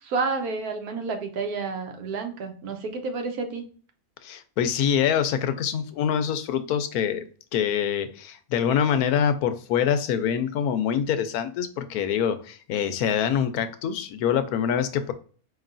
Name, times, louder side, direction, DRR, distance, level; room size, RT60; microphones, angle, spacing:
voice 1, 0.0-3.6, right 4 dB, 90° right, 5 dB, 1.4 m, -30 dB
voice 2, 4.2-15.1, left 8 dB, 90° left, 10 dB, 1.1 m, -25 dB
4.7 x 3.0 x 2.5 m, 0.41 s
omnidirectional pair, 1.5 m